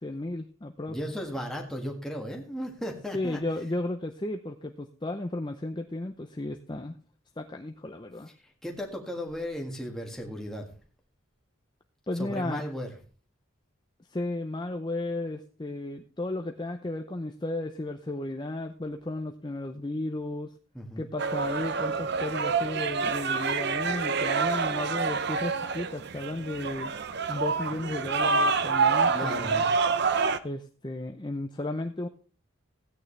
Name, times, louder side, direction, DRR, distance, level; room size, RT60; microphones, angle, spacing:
voice 1, 0.0-1.0 3.1-7.0 7.4-8.3 12.1-12.6 14.1-20.5 21.0-26.9 27.3-29.6 30.4-32.1, left 2 dB, 20° left, 5 dB, 0.6 m, -34 dB
voice 2, 0.9-3.4 8.4-10.7 12.1-12.9 20.7-21.1 29.1-29.7, equal, ahead, 0 dB, 1.7 m, -35 dB
sound 1, 21.2-30.4, right 5 dB, 50° right, 0.6 m, -27 dB
16.5 x 9.3 x 3.3 m, 0.39 s
head